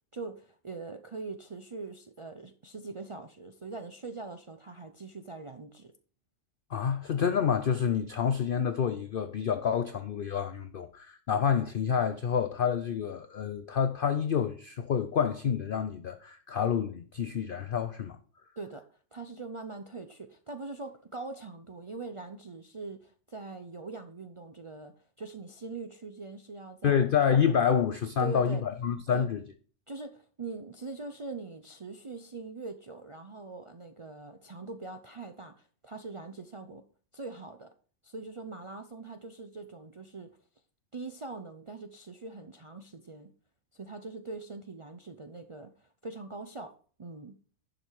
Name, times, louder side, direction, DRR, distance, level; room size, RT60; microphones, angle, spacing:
voice 1, 0.1-5.9 18.6-18.9 19.1-27.1 28.2-28.6 29.1-29.3 29.9-36.8 37.1-37.7 38.0-40.3 40.9-43.3 43.7-46.7 47.0-47.4, right 3 dB, 55° right, 0.3 m, -42 dB
voice 2, 6.7-18.2 26.8-29.4, left 7 dB, 55° left, 0.6 m, -28 dB
11.0 x 5.3 x 4.6 m
omnidirectional pair, 1.4 m